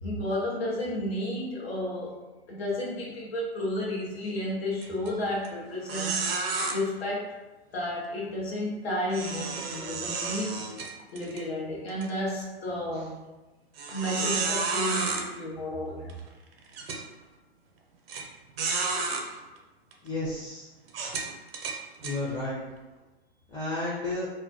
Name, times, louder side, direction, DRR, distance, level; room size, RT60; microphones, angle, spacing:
voice 1, 0.0-2.2 2.5-6.2 6.7-7.4 7.7-10.6 11.1-13.1 13.9-16.1, left 1 dB, 70° left, -4 dB, 0.7 m, -32 dB
sound 1, 4.8-5.1 5.4-5.5 5.9-6.7 9.1-11.4 11.9-12.1 12.7-12.8 13.8-15.2 16.1-16.2 16.7-17.0 18.1-18.2 18.6-19.2 19.9-20.1 20.9-22.2, right 4 dB, 65° right, 0.6 m, -31 dB
voice 2, 20.0-20.7 22.0-22.6 23.5-24.3, left 2 dB, 15° left, -9 dB, 0.5 m, -32 dB
2.2 x 2.1 x 2.6 m, 1.1 s
hypercardioid pair, 115°, 32 cm